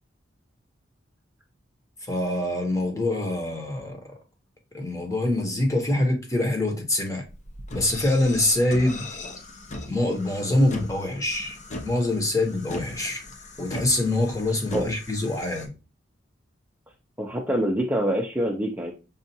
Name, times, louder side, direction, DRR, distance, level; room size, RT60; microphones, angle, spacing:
voice 1, 2.1-4.0 4.7-7.2 7.7-9.1 9.8-11.6 11.8-13.2 13.6-15.7, left 1 dB, 15° left, 0.9 m, -24 dB
sound 1, 7.2-15.7, left 2 dB, 40° left, 0.6 m, -39 dB
voice 2, 17.2-18.9, right 1 dB, 10° right, 0.5 m, -25 dB
5.4 x 2.4 x 2.7 m
head